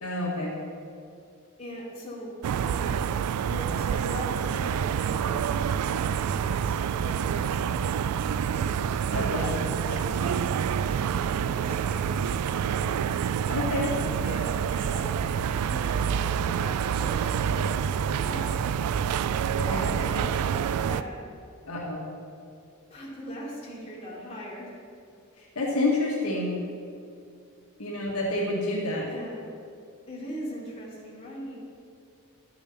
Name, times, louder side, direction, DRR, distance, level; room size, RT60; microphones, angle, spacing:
voice 1, 0.0-0.5 9.1-9.6 13.5-13.9 19.6-19.9 21.6-22.0 25.6-26.6 27.8-29.1, left 2 dB, 85° left, -3 dB, 1.9 m, -28 dB
voice 2, 1.6-2.3 2.6-3.0 3.5-6.8 7.0-9.0 9.8-10.5 10.9-13.1 14.2-16.8 17.0-17.7 18.1-18.6 19.8-21.3 22.9-24.7 29.0-29.4 30.1-31.5, equal, 30° left, -6 dB, 2.9 m, -40 dB
sound 1, 2.4-21.0, right 8 dB, 85° right, 0.3 m, -27 dB
12.0 x 6.9 x 5.6 m, 2.4 s
head